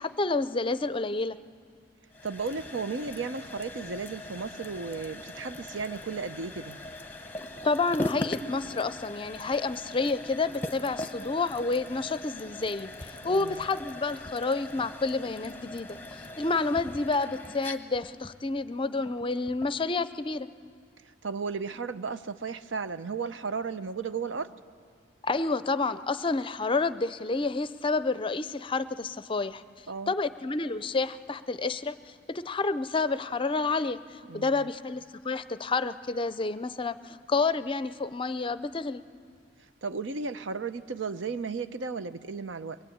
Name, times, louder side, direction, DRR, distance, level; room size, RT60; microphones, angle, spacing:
voice 1, 0.0-1.4 7.6-15.9 16.4-20.5 25.2-29.6 30.1-32.0 32.3-34.0 34.3-39.0, left 3 dB, 30° left, 14 dB, 0.5 m, -29 dB
sound 1, 2.1-19.8, left 1 dB, 10° left, 1.0 m, -40 dB
voice 2, 2.2-6.8 13.2-13.6 21.0-24.5 29.9-30.1 34.3-34.7 39.8-42.8, right 5 dB, 85° right, 12 dB, 0.7 m, -34 dB
23.0 x 20.5 x 8.7 m, 2.1 s
head